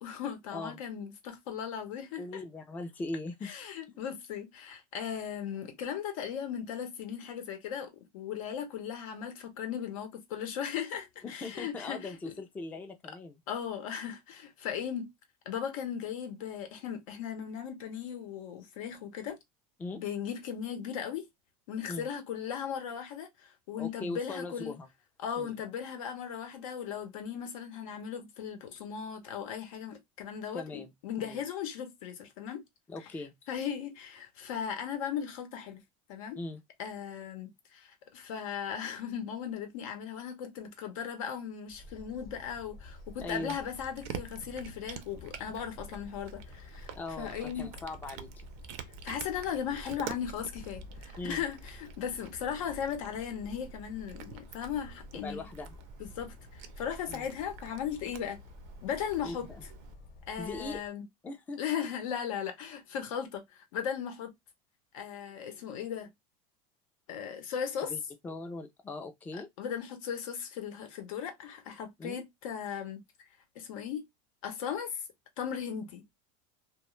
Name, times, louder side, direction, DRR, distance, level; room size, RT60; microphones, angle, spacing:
voice 1, 0.0-2.4 3.4-12.3 13.5-15.1 15.5-19.4 19.9-21.3 21.7-24.7 25.2-32.6 33.5-35.8 36.1-36.4 36.8-46.9 47.2-47.7 49.0-55.5 56.0-58.4 58.8-59.5 60.3-61.0 61.6-64.3 64.9-66.1 67.1-67.9 69.3-73.0 73.5-74.0 74.4-75.0 75.4-76.0, left 8 dB, 90° left, 0.8 m, -37 dB
voice 2, 2.2-3.5 3.9-4.0 11.2-13.4 19.8-20.0 21.9-22.1 23.8-24.9 25.4-25.6 30.5-30.9 31.2-31.4 32.9-33.3 36.4-36.6 43.2-43.6 47.0-48.5 51.2-51.4 55.2-55.8 57.1-57.3 59.2-59.6 60.4-60.8 61.2-61.6 67.8-69.5 72.0-72.2, left 2 dB, 10° left, 0.3 m, -40 dB
sound 1, 41.7-60.9, left 2 dB, 45° left, 0.9 m, -50 dB
Cat, 42.8-59.9, right 9 dB, 60° right, 0.5 m, -48 dB
2.4 x 2.2 x 3.0 m
supercardioid pair, 150°, 17 cm